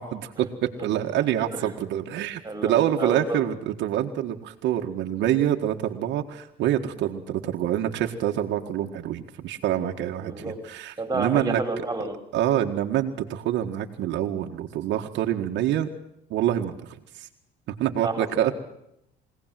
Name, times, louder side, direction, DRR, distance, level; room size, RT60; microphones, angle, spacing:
voice 1, 0.0-11.6 12.3-15.9 16.3-17.3 17.8-18.5, right 11 dB, 75° right, 3 dB, 1.8 m, -26 dB
voice 2, 2.4-3.4 10.3-10.6 11.0-12.2 18.0-18.5, right 2 dB, 15° right, 6 dB, 3.9 m, -30 dB
24.0 x 17.5 x 7.7 m, 0.81 s
cardioid pair, 120°, 19 cm